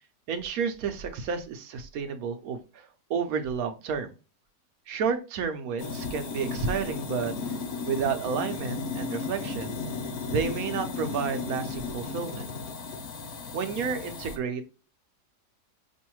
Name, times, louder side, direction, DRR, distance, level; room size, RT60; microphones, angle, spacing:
voice 1, 0.3-4.1 4.9-7.3 7.9-9.8 10.3-12.5 13.5-14.6, right 6 dB, 65° right, 7 dB, 1.1 m, -31 dB
sound 1, 5.8-14.4, left 4 dB, 65° left, 1.3 m, -35 dB
5.4 x 2.5 x 2.9 m, 0.32 s
omnidirectional pair, 1.8 m